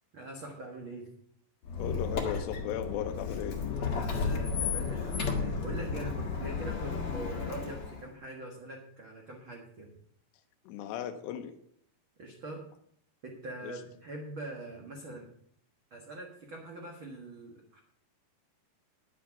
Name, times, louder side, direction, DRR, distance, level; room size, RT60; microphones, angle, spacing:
voice 1, 0.1-1.1 3.8-9.9 12.2-12.7 13.2-15.3 15.9-17.8, right 2 dB, 70° right, 0 dB, 1.2 m, -43 dB
Squeak, 1.6-8.1, left 5 dB, 50° left, 1.8 m, -33 dB
voice 2, 1.8-3.6 10.6-11.5 13.6-13.7, left 9 dB, 80° left, 6 dB, 2.9 m, -36 dB
10.5 x 8.9 x 5.8 m, 0.66 s
omnidirectional pair, 5.0 m